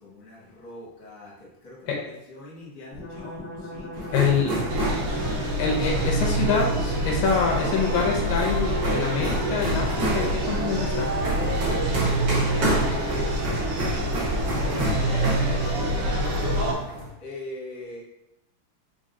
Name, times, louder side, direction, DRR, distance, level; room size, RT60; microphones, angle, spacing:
voice 1, 0.0-4.7 10.9-13.0 13.4-16.2 17.2-18.0, left 1 dB, 45° left, -6 dB, 1.5 m, -42 dB
sound 1, 2.9-8.7, left 1 dB, 65° left, 1.1 m, -39 dB
sound 2, 3.9-17.1, equal, 55° right, 1.1 m, -31 dB
voice 2, 4.1-4.5 5.6-11.1, left 5 dB, 85° left, 0 dB, 2.3 m, -25 dB
sound 3, 4.7-16.7, right 1 dB, 85° right, 1.2 m, -26 dB
5.0 x 3.9 x 2.7 m, 0.89 s
omnidirectional pair, 4.0 m